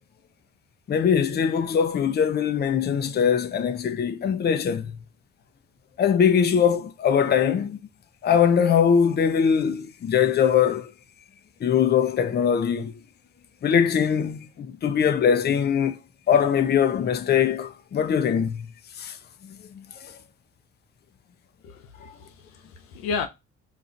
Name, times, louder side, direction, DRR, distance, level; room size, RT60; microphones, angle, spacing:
voice 1, 0.9-4.9 6.0-7.8 8.2-10.9 11.6-13.0 13.6-16.0 16.3-18.6 19.0-19.2 19.4-20.1, left 7 dB, 35° left, 0.5 m, -22 dB
voice 2, 21.6-23.3, left 5 dB, 90° left, 0.6 m, -33 dB
2.4 x 2.3 x 3.9 m
supercardioid pair, 55°, 31 cm